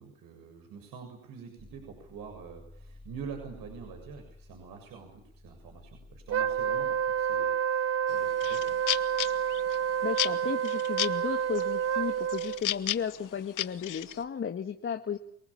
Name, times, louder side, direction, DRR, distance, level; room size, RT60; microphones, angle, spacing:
voice 1, 0.0-8.8, right 6 dB, 55° right, 3 dB, 7.2 m, -46 dB
sound 1, 1.6-14.3, left 2 dB, 20° right, 4.9 m, -55 dB
Wind instrument woodwind instrument, 6.3-12.6, right 8 dB, 35° right, 1.0 m, -29 dB
sound 2, 8.1-9.8 10.2-11.2 11.5-12.0 12.3-14.2, left 15 dB, 50° left, 1.2 m, -33 dB
voice 2, 10.0-15.2, left 7 dB, 30° left, 5 dB, 1.8 m, -34 dB
28.5 x 19.0 x 8.7 m, 0.70 s
supercardioid pair, 90°, 40 cm